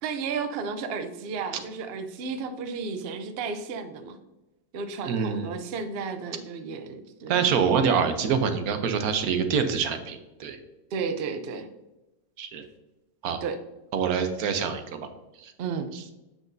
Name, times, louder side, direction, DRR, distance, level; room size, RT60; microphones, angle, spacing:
voice 1, 0.0-4.2 4.7-7.4 10.9-11.7 13.4-13.6 15.6-15.9, right 5 dB, 90° right, 8 dB, 0.5 m, -33 dB
voice 2, 5.0-5.5 7.3-10.6 12.4-12.6 13.2-13.4 13.9-15.1 15.4-15.5, right 6 dB, 65° right, 8 dB, 1.1 m, -25 dB
7.8 x 6.0 x 2.6 m, 1.0 s
omnidirectional pair, 1.9 m